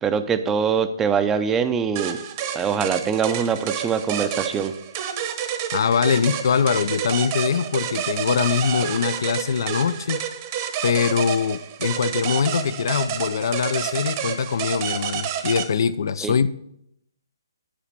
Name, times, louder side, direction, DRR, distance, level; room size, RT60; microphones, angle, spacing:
voice 1, 0.0-2.2 2.5-4.7 16.2-16.3, right 6 dB, 10° right, 10 dB, 0.5 m, -23 dB
sound 1, 2.0-15.7, right 9 dB, 30° right, 1.0 m, -29 dB
voice 2, 5.7-10.2 10.8-16.5, left 6 dB, 60° left, 14 dB, 0.5 m, -23 dB
10.0 x 4.9 x 5.9 m, 0.76 s
hypercardioid pair, 155°, 2 cm